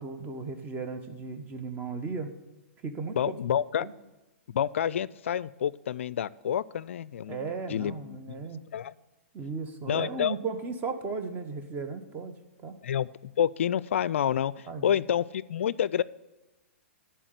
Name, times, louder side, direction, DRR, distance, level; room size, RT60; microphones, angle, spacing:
voice 1, 0.0-2.3 2.8-3.4 3.8-3.9 7.3-8.6 9.3-12.3 12.6-12.8 14.7-15.0, right 4 dB, 25° right, 7 dB, 1.1 m, -36 dB
voice 2, 3.2-3.9 4.5-8.9 9.9-10.4 12.8-13.1 13.4-16.0, left 9 dB, 70° left, 20 dB, 0.3 m, -29 dB
11.0 x 4.4 x 8.0 m, 1.1 s
hypercardioid pair, 120°, 7 cm